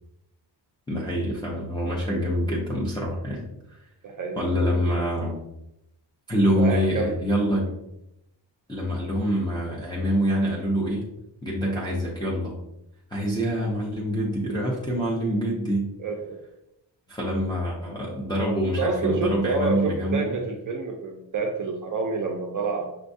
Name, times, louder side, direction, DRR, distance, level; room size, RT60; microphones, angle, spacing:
voice 1, 0.9-3.8 4.4-5.4 6.3-7.7 8.7-11.0 11.4-12.6 13.1-15.9 17.1-20.4, equal, 10° left, -5 dB, 0.5 m, -26 dB
voice 2, 4.0-4.4 4.8-4.9 6.6-7.2 16.0-16.4 18.8-23.0, right 4 dB, 45° right, 2 dB, 0.4 m, -28 dB
6.0 x 2.2 x 2.6 m, 0.85 s
wide cardioid pair, 160°, 45 cm